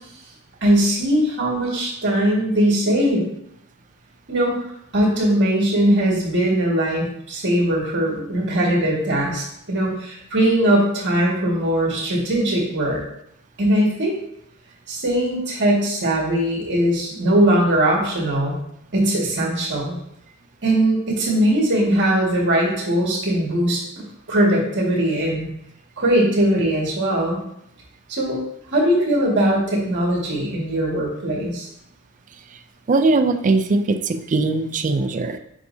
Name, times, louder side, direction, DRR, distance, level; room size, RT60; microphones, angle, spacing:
voice 1, 0.6-3.3 4.3-4.6 4.9-13.0 13.6-14.1 14.9-18.6 18.9-20.0 20.6-25.5 26.0-27.4 28.1-28.4 28.7-31.7, right 1 dB, 55° right, -3 dB, 1.9 m, -20 dB
voice 2, 32.9-35.4, right 3 dB, 35° right, 7 dB, 0.4 m, -20 dB
7.3 x 5.4 x 2.7 m, 0.76 s
head